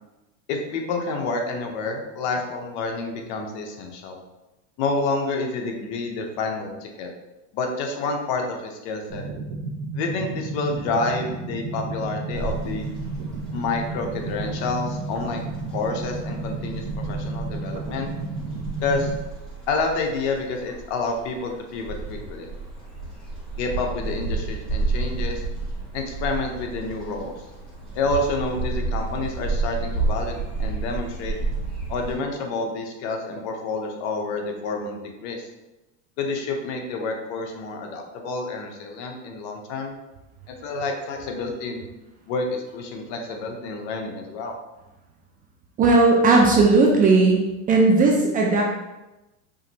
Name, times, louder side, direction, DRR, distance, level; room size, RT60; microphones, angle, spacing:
voice 1, 0.5-4.2 4.8-7.1 7.5-9.3 9.9-12.9 13.5-15.4 15.7-18.1 18.8-19.1 19.7-22.5 23.6-25.4 25.9-27.3 27.9-31.4 31.9-35.5 36.2-40.0 40.5-41.9 42.3-44.6, left 3 dB, 55° left, 3 dB, 0.8 m, -29 dB
sound 1, 9.1-19.1, right 3 dB, 55° right, 0.8 m, -32 dB
sound 2, 12.3-32.1, right 3 dB, ahead, 1.4 m, -31 dB
voice 2, 45.8-47.4 47.7-48.6, right 3 dB, 25° right, 0 dB, 0.4 m, -16 dB
4.9 x 3.0 x 2.8 m, 1.0 s
supercardioid pair, 130°, 39 cm